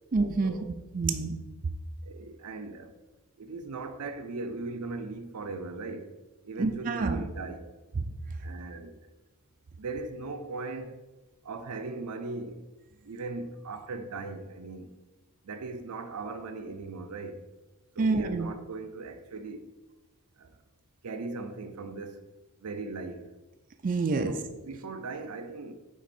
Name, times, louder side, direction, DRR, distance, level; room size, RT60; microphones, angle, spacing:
voice 1, 0.1-0.5 0.9-1.3 6.6-7.3 8.0-8.1 18.0-18.5 23.8-24.3, right 3 dB, 40° right, 0.4 m, -27 dB
voice 2, 2.0-2.9 3.4-6.2 6.4-7.7 8.4-9.0 9.8-11.0 11.4-12.6 13.0-14.9 15.4-17.4 18.0-19.7 20.4-20.5 21.0-22.2 22.6-23.3 24.2-25.7, right 3 dB, 85° right, 0.6 m, -38 dB
5.9 x 3.9 x 4.3 m
head